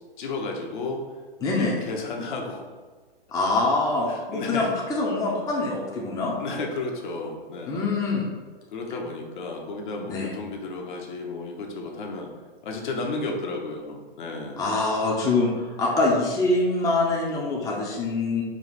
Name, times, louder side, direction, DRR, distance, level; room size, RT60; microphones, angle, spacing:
voice 1, 0.2-1.0 1.4-2.7 4.1-4.7 6.4-7.8 8.7-12.3 12.6-14.6, left 3 dB, 55° left, 1 dB, 0.9 m, -33 dB
voice 2, 1.4-1.8 3.3-6.3 7.7-8.3 10.1-10.3 14.6-18.4, left 2 dB, 10° left, -3 dB, 0.6 m, -24 dB
4.7 x 2.4 x 4.1 m, 1.4 s
hypercardioid pair, 120°, 29 cm